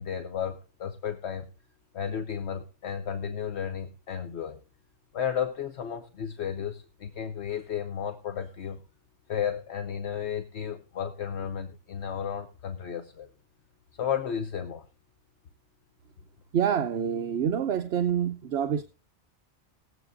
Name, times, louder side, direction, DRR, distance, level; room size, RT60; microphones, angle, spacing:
voice 1, 0.0-1.5 1.9-4.6 5.1-8.8 9.3-13.3 14.0-14.8, left 8 dB, 70° left, 1.1 m, -33 dB
voice 2, 16.5-18.8, right 8 dB, 65° right, 1.0 m, -27 dB
19.5 x 8.0 x 2.6 m
omnidirectional pair, 1.2 m